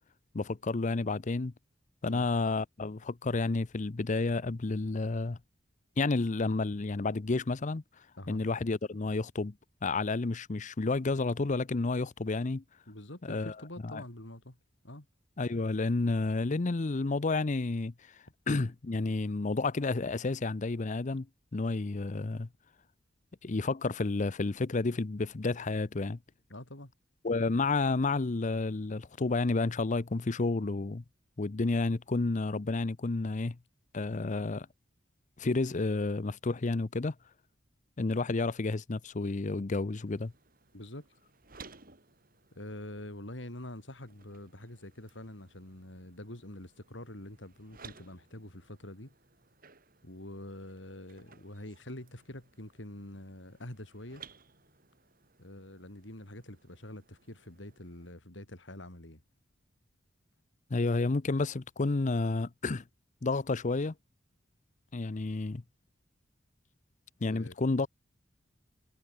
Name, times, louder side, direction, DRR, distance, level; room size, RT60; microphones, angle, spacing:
voice 1, 0.3-1.5 2.0-5.4 6.0-7.8 8.3-9.5 9.8-12.6 13.2-13.5 13.8-14.0 15.4-17.9 18.5-21.3 21.5-22.5 23.4-26.2 27.2-31.0 31.4-33.6 33.9-34.7 35.4-37.1 38.0-40.3 60.7-62.8 63.2-63.9 64.9-65.6 67.2-67.9, left 3 dB, 40° left, 0.6 m, -30 dB
voice 2, 12.9-14.6 14.8-15.1 26.5-26.9 40.7-41.1 42.5-49.1 50.0-54.3 55.4-59.2 67.3-67.5, left 1 dB, 75° left, 4.8 m, -45 dB
sound 1, 40.1-58.1, right 5 dB, 50° right, 6.9 m, -58 dB
head